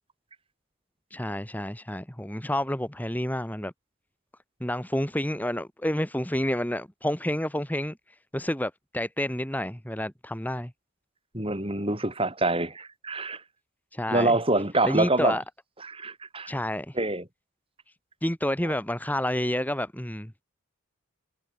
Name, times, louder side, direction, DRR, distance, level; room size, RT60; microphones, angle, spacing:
voice 1, 1.1-3.7 4.6-7.9 8.3-10.7 13.9-14.4 14.8-15.4 16.5-17.0 18.2-20.3, left 1 dB, 10° left, 2.2 m, -29 dB
voice 2, 11.3-13.4 14.1-15.4 15.9-16.5 17.0-17.2, right 2 dB, 25° right, 7.8 m, -26 dB
head